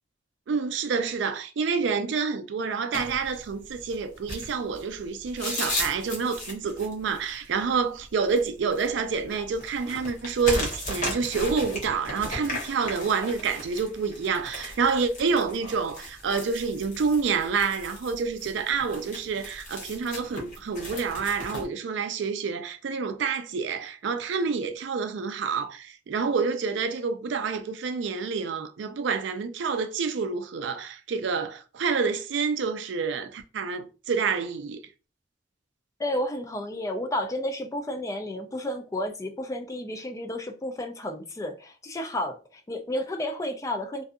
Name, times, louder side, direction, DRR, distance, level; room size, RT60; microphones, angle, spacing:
voice 1, 0.5-34.8, right 5 dB, 70° right, 0.4 m, -28 dB
sound 1, 2.9-21.7, left 1 dB, 45° left, 0.9 m, -37 dB
voice 2, 36.0-44.0, left 1 dB, 15° left, 0.3 m, -32 dB
2.6 x 2.4 x 2.3 m
head